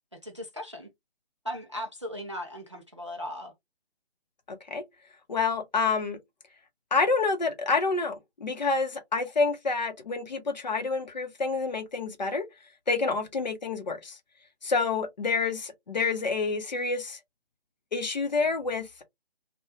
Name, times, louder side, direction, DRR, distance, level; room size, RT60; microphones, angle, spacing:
voice 1, 0.2-0.9 1.4-3.5, equal, 30° right, 0.4 m, -37 dB
voice 2, 5.3-6.2 6.9-12.5 12.9-14.2 14.6-17.2 17.9-19.0, left 4 dB, 40° left, 0.6 m, -28 dB
2.2 x 2.1 x 2.9 m
figure-of-eight pair, 150°, 32 cm